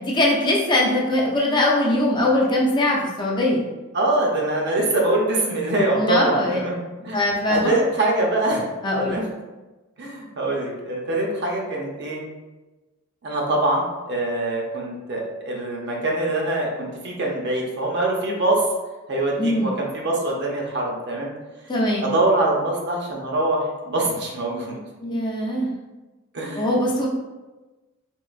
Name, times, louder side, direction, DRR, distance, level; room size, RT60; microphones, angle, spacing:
voice 1, 0.0-3.6 5.9-6.6 7.1-7.7 8.8-9.2 19.4-19.8 21.7-22.1 25.0-25.7 26.6-27.1, left 1 dB, 20° left, -3 dB, 0.5 m, -21 dB
voice 2, 3.9-6.8 7.0-7.2 7.5-8.6 9.0-9.2 10.0-12.2 13.2-18.6 19.1-21.3 22.0-24.8 26.3-26.7, right 2 dB, 55° right, -1 dB, 0.7 m, -24 dB
3.7 x 2.9 x 2.4 m, 1.2 s
head